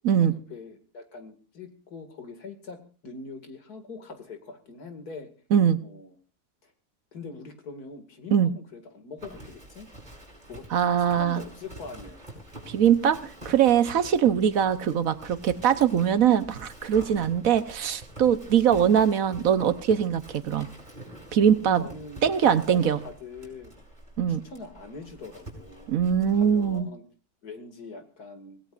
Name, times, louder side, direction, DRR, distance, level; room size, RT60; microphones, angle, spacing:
voice 1, 0.2-5.3 5.8-6.1 6.6-6.7 7.1-9.9 10.5-10.7 11.0-12.2 21.6-23.7 24.3-26.0 26.3-27.0 27.4-28.6, left 3 dB, 85° left, 7 dB, 2.7 m, -42 dB
Livestock farm animals working animals, 9.2-26.8, right 1 dB, 30° right, 5.9 m, -46 dB
voice 2, 10.7-11.4 12.7-20.7 21.3-21.8 22.2-23.0 24.2-24.4 25.9-26.9, right 8 dB, 65° right, 12 dB, 1.3 m, -22 dB
25.0 x 17.0 x 2.5 m, 0.35 s
omnidirectional pair, 1.6 m